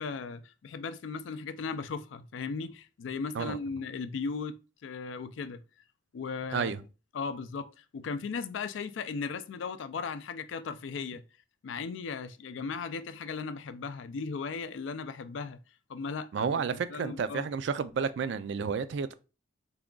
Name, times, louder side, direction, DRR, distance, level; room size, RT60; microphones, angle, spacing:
voice 1, 0.0-5.6 6.1-6.7 7.1-11.2 11.6-15.6 15.9-17.5, left 5 dB, 75° left, 0.4 m, -37 dB
voice 2, 16.3-19.1, right 6 dB, 65° right, 0.3 m, -31 dB
3.5 x 2.3 x 3.7 m
head